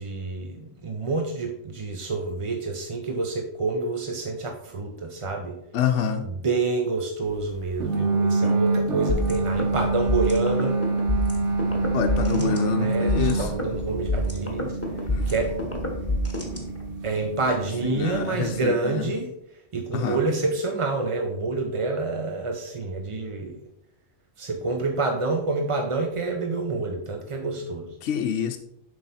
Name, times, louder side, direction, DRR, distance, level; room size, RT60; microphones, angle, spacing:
voice 1, 0.0-5.5 6.2-10.9 12.4-14.7 15.3-15.5 17.0-19.3 19.7-23.6 24.4-27.9, right 3 dB, 35° right, 3 dB, 0.5 m, -28 dB
voice 2, 5.7-6.3 8.4-8.6 11.9-13.5 15.1-15.3 18.0-19.1 19.9-20.2 28.0-28.6, left 8 dB, 65° left, 4 dB, 0.9 m, -27 dB
sound 1, 7.8-18.6, right 3 dB, 65° right, 1.2 m, -27 dB
sound 2, 9.1-17.1, left 1 dB, 10° left, 1.2 m, -29 dB
7.7 x 5.4 x 4.2 m, 0.79 s
omnidirectional pair, 1.3 m